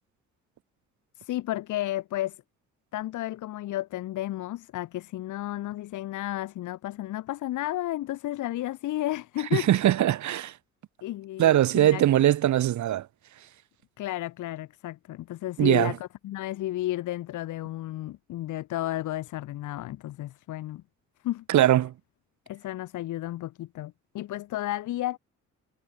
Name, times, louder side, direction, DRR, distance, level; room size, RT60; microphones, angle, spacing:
voice 1, 1.2-2.4 2.9-9.9 11.0-12.0 14.0-20.8 21.2-21.4 22.5-25.2, left 15 dB, 80° left, 1.6 m, -32 dB
voice 2, 9.5-10.5 11.4-13.0 15.6-15.9 21.5-21.9, right 12 dB, 70° right, 1.9 m, -21 dB
cardioid pair, 90°, 30 cm